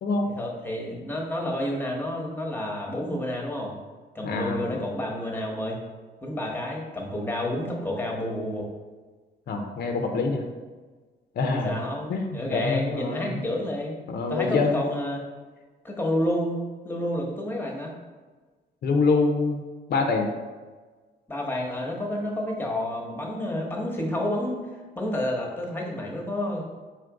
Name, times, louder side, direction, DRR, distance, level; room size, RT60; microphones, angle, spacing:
voice 1, 0.4-3.7 4.1-5.8 6.2-8.7 11.5-14.0 14.3-15.2 15.8-16.6 16.8-17.9 21.3-24.6 25.0-26.6, left 1 dB, 10° left, -1 dB, 1.0 m, -29 dB
voice 2, 4.2-4.8 9.5-10.4 11.4-11.8 12.1-13.4 14.1-14.8 18.8-19.6 19.9-20.3, left 3 dB, 50° left, 4 dB, 0.6 m, -25 dB
4.3 x 2.5 x 4.6 m, 1.4 s
cardioid pair, 90°, 20 cm